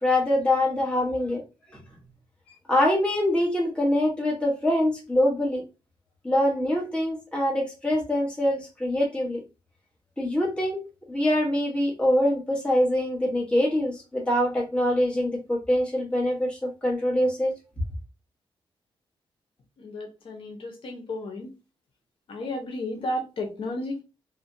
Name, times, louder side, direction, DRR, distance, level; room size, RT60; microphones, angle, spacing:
voice 1, 0.0-1.4 2.7-5.6 6.2-9.4 10.2-10.8 11.1-17.5, left 1 dB, 10° left, 1.1 m, -24 dB
voice 2, 19.8-21.5 22.3-24.0, left 1 dB, 65° left, 0.7 m, -33 dB
3.2 x 2.1 x 2.6 m
wide cardioid pair, 140°, 10 cm